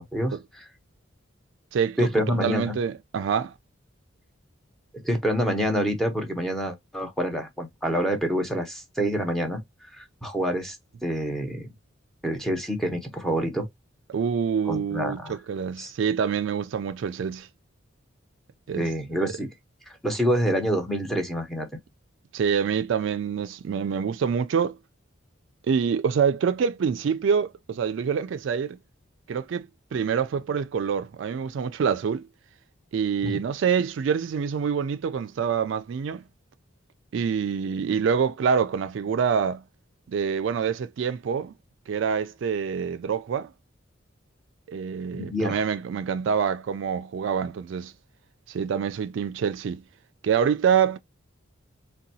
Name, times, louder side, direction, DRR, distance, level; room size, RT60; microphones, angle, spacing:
voice 1, 0.1-0.6 2.0-2.7 4.9-9.6 9.9-10.8 11.0-11.7 12.2-13.7 14.7-15.4 15.8-15.9 18.8-19.5 20.0-21.7 33.2-33.4 45.1-45.6, equal, ahead, 0.7 m, -27 dB
voice 2, 1.7-3.5 14.1-17.5 18.7-18.9 19.2-19.3 22.3-24.8 25.7-28.8 29.3-32.2 32.9-36.2 37.1-39.6 40.1-41.5 41.9-43.5 44.7-47.9 48.5-49.8 50.2-51.0, right 7 dB, 65° right, 0.3 m, -26 dB
3.8 x 2.2 x 2.6 m
head